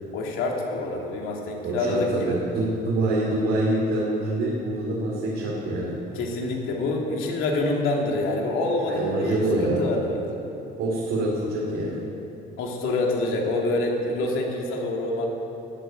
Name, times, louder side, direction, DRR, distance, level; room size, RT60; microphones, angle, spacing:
voice 1, 0.1-2.4 6.1-10.2 12.6-15.3, left 2 dB, 70° left, 0 dB, 2.6 m, -26 dB
voice 2, 1.6-5.9 8.9-9.8 10.8-12.0, right 2 dB, 80° right, -5 dB, 3.0 m, -25 dB
13.0 x 8.5 x 9.1 m, 2.9 s
cardioid pair, 150°, 21 cm